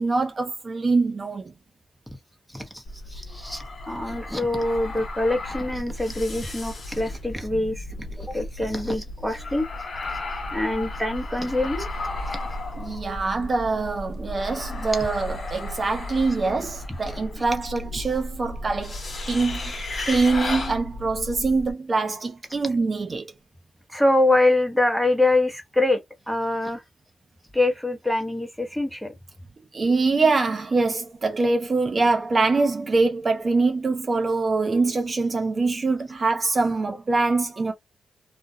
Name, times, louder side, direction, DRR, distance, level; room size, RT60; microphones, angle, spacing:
voice 1, 0.0-1.5 12.8-19.0 19.3-19.6 20.1-23.3 29.7-37.7, right 3 dB, 40° right, 0.5 m, -24 dB
voice 2, 2.5-2.8 3.1-9.6 10.5-11.9 23.9-26.0 26.3-26.8 27.5-29.1, left 2 dB, ahead, 0.9 m, -24 dB
sound 1, 2.8-21.7, left 2 dB, 50° left, 0.9 m, -34 dB
2.3 x 2.2 x 2.6 m
cardioid pair, 80°, 0 cm